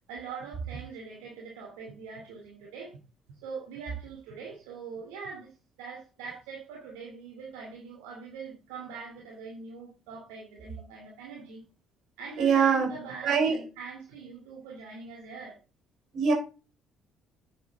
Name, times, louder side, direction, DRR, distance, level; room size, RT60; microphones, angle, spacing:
voice 1, 0.1-3.0 3.3-5.5 5.8-11.6 12.2-15.6, right 4 dB, 75° right, 2.6 m, -43 dB
voice 2, 12.4-12.9 13.2-13.6 16.1-16.3, right 6 dB, 55° right, 4.2 m, -23 dB
9.8 x 8.0 x 3.6 m
hypercardioid pair, 50°, 0 cm